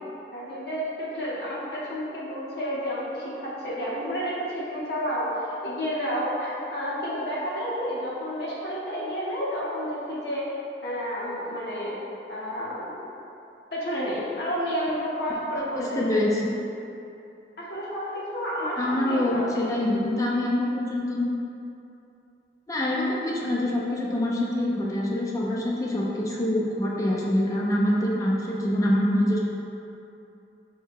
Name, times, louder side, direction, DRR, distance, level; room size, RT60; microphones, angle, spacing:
voice 1, 0.3-10.4 10.8-11.9 12.3-13.0 13.7-16.1 17.7-19.8, equal, 70° left, -7 dB, 1.0 m, -30 dB
voice 2, 15.8-16.6 18.8-21.2 22.7-29.4, left 1 dB, 20° left, -4 dB, 0.3 m, -25 dB
4.2 x 2.8 x 3.5 m, 2.8 s
head